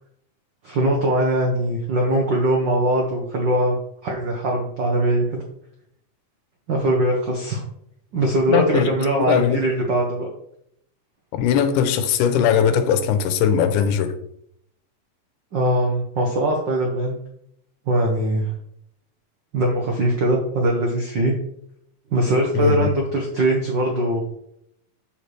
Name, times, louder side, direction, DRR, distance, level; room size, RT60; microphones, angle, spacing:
voice 1, 0.6-3.8 4.0-5.4 6.7-7.6 8.1-10.3 15.5-17.2 17.9-18.5 19.5-21.3 22.1-24.2, right 1 dB, 85° right, 1.0 m, -21 dB
voice 2, 8.5-8.9 9.3-9.6 11.3-14.1 22.5-22.9, left 8 dB, 85° left, 2.2 m, -19 dB
7.2 x 6.3 x 3.3 m
omnidirectional pair, 3.7 m